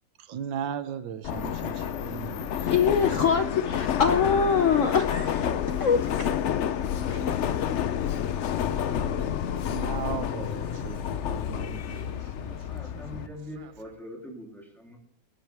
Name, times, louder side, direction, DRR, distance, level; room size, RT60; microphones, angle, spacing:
voice 1, 0.2-3.2 9.7-11.0 11.3-12.5 12.9-13.7, right 8 dB, 85° right, 1.6 m, -38 dB
Subway metro underground, 1.2-13.3, left 9 dB, 85° left, 0.6 m, -29 dB
voice 2, 2.7-6.3 7.0-7.3 7.7-7.8, left 6 dB, 55° left, 1.0 m, -24 dB
sound 1, 4.7-13.9, right 2 dB, 65° right, 3.3 m, -51 dB
voice 3, 12.4-15.0, left 1 dB, ahead, 3.0 m, -43 dB
20.5 x 10.5 x 3.4 m
omnidirectional pair, 2.0 m